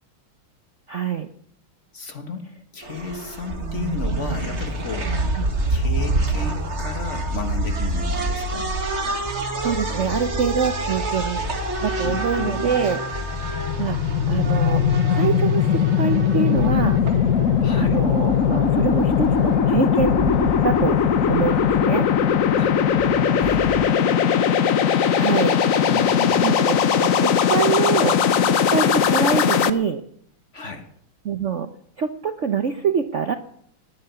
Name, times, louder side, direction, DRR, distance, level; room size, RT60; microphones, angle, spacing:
voice 1, 0.9-1.3 5.3-5.5 9.6-11.4 11.8-13.0 13.6-14.0 14.3-14.8 15.1-17.0 17.7-21.0 21.3-22.1 25.1-25.6 26.4-30.0 31.2-31.7 32.0-33.3, right 6 dB, 50° right, 8 dB, 0.9 m, -25 dB
voice 2, 1.9-2.4 2.7-5.1 5.7-8.7 12.0-12.6 17.6-18.0 22.6-22.8 23.3-24.3 25.9-26.4 30.5-30.9, left 4 dB, 40° left, 7 dB, 1.7 m, -33 dB
sound 1, 2.8-21.8, right 2 dB, 35° right, 2.2 m, -28 dB
sound 2, 4.2-23.9, left 3 dB, 20° left, 2.9 m, -34 dB
sound 3, 13.1-29.7, left 8 dB, 55° left, 1.0 m, -19 dB
19.0 x 10.5 x 7.0 m, 0.65 s
omnidirectional pair, 2.2 m